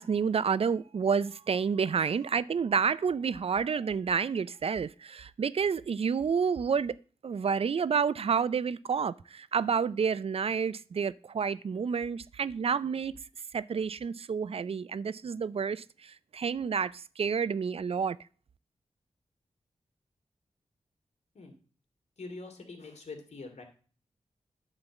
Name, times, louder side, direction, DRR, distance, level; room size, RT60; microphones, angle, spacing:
voice 1, 0.0-7.0 7.2-13.1 13.5-18.2, right 6 dB, 55° right, 0.4 m, -29 dB
voice 2, 22.2-23.6, left 3 dB, 70° left, 2.4 m, -44 dB
9.7 x 4.0 x 7.1 m
cardioid pair, 55°, 12 cm